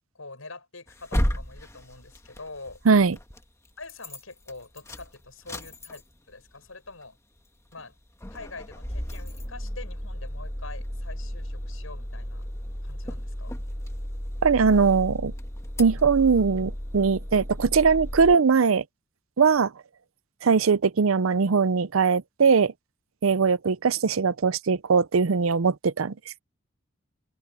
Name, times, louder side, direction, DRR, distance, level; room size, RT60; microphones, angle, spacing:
voice 1, 0.1-2.8 3.8-7.2 7.7-7.9 8.3-12.4 12.8-13.5, left 3 dB, 80° left, 7.4 m, -44 dB
sound 1, 0.9-3.4 3.8-4.2 4.5-6.3 6.7-6.8 7.0-7.1 7.7-7.9 8.2-18.4, equal, 15° left, 1.5 m, -34 dB
voice 2, 14.4-15.3 15.8-18.8 19.4-19.7 20.4-22.7 23.2-26.4, right 5 dB, 85° right, 0.6 m, -21 dB
open air
head